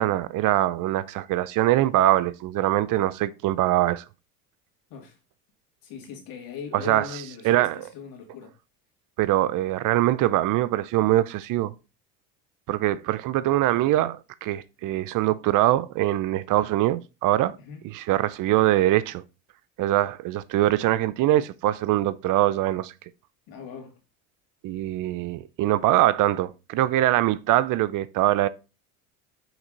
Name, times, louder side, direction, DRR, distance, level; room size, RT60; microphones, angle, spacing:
voice 1, 0.0-4.0 6.7-7.1 7.4-7.8 9.2-11.7 12.7-17.6 17.8-19.2 19.8-22.9 24.6-28.5, right 14 dB, 50° right, 0.6 m, -23 dB
voice 2, 5.8-8.5 17.6-17.8 23.5-24.0, left 7 dB, 55° left, 2.6 m, -40 dB
6.0 x 5.2 x 3.9 m
supercardioid pair, 90°, 41 cm